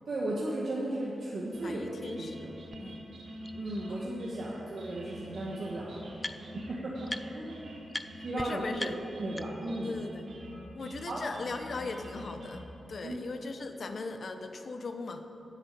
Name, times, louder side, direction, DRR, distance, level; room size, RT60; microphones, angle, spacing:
voice 1, 0.1-1.9 2.2-2.5 3.5-6.0 6.5-7.8 8.2-8.9 9.2-10.0 11.1-11.2 13.0-13.2, right 1 dB, 50° right, -5 dB, 1.4 m, -36 dB
sound 1, 1.5-12.6, equal, 80° right, 2.3 m, -47 dB
voice 2, 1.6-2.5 2.8-3.2 3.9-4.6 8.2-9.0 9.8-10.2 10.7-15.3, left 3 dB, 50° left, 7 dB, 0.8 m, -39 dB
sound 2, 2.7-2.8 3.4-3.5 4.8-4.9 5.2-6.7 7.1-7.5 7.9-8.1 8.4-8.5 8.8-9.8, left 1 dB, 15° left, 0.4 m, -40 dB
10.0 x 8.3 x 8.2 m, 2.9 s
wide cardioid pair, 165°, 0 cm